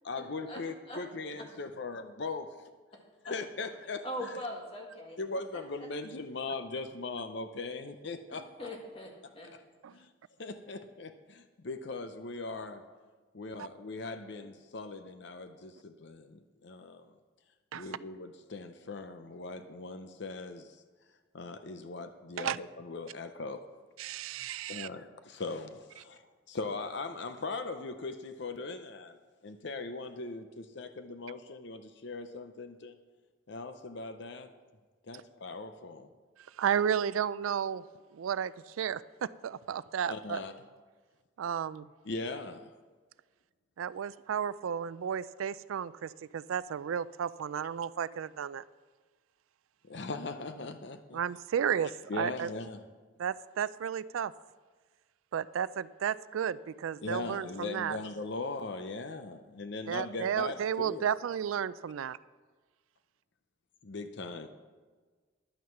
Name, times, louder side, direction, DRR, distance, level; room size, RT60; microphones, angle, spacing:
voice 1, 0.0-2.5 3.3-4.4 5.2-8.7 9.9-10.1 10.4-12.8 13.3-17.1 17.7-20.8 21.3-23.6 24.7-29.2 29.4-32.9 33.5-34.5 35.0-36.1 40.0-40.5 42.1-42.7 49.9-51.2 52.1-52.8 57.0-61.1 63.8-64.5, left 3 dB, 60° left, 9 dB, 0.6 m, -40 dB
voice 2, 4.0-5.2 5.5-5.6 8.3-9.5, equal, 30° left, 0 dB, 1.9 m, -41 dB
voice 3, 24.0-24.9 36.6-37.8 38.1-40.4 41.4-41.9 43.8-48.6 51.1-52.5 53.2-54.3 55.3-58.0 59.9-62.2, right 8 dB, 85° right, 18 dB, 0.3 m, -33 dB
11.0 x 9.4 x 5.9 m, 1.4 s
head